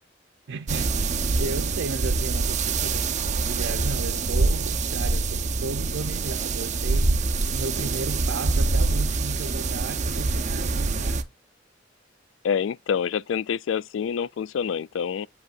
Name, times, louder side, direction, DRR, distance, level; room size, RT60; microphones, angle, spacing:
voice 1, 0.5-1.1 1.4-11.3, right 3 dB, 85° right, 0.6 m, -34 dB
sound 1, 0.7-11.2, right 3 dB, 40° right, 0.6 m, -25 dB
voice 2, 12.4-15.3, left 7 dB, 75° left, 0.3 m, -27 dB
8.0 x 5.3 x 2.4 m
head